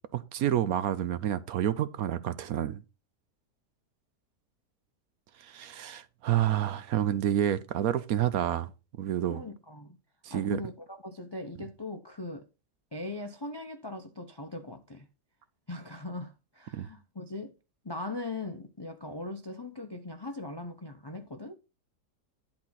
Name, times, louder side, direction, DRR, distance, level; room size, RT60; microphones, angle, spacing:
voice 1, 0.1-2.8 5.4-8.7 9.0-9.4 10.2-10.6 16.7-16.9, right 11 dB, 70° right, 1.0 m, -29 dB
voice 2, 9.3-10.0 10.3-12.5 12.9-15.1 15.7-17.5 17.8-21.5, left 2 dB, 40° left, 0.3 m, -40 dB
11.0 x 4.2 x 5.7 m
omnidirectional pair, 1.8 m